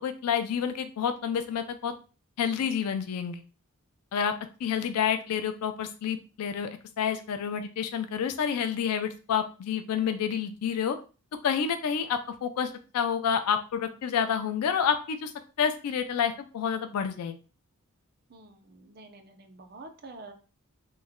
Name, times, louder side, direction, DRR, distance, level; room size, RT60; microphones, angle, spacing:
voice 1, 0.0-1.9 2.4-3.4 4.1-4.3 4.6-6.7 7.0-11.0 11.4-15.3 15.6-17.4, left 7 dB, 90° left, 8 dB, 0.4 m, -29 dB
voice 2, 18.3-20.3, right 2 dB, 45° right, 5 dB, 0.5 m, -48 dB
3.1 x 2.2 x 3.5 m, 0.35 s
head